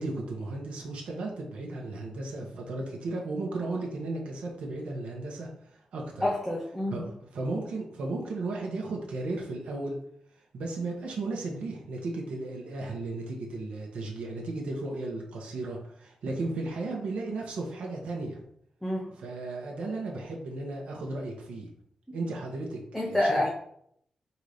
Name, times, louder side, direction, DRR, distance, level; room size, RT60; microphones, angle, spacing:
voice 1, 0.0-6.3 6.9-10.0 10.5-18.4 19.1-21.7 22.1-23.5, right 2 dB, 70° right, -1 dB, 0.9 m, -35 dB
voice 2, 6.2-7.0 18.8-19.0 22.9-23.5, left 1 dB, ahead, -3 dB, 0.6 m, -27 dB
3.9 x 2.8 x 4.9 m, 0.69 s
wide cardioid pair, 180°, 2 cm